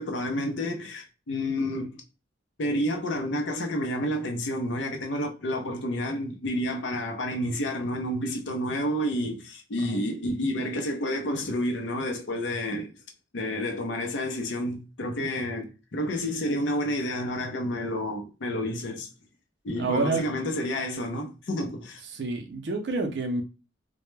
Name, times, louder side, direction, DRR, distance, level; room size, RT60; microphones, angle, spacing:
voice 1, 0.0-2.0 2.6-12.9 13.3-19.1 19.6-22.0, left 1 dB, 70° left, 0.5 m, -30 dB
voice 2, 19.8-20.3 22.0-23.4, right 3 dB, 60° right, 0.5 m, -29 dB
2.2 x 2.0 x 3.1 m
head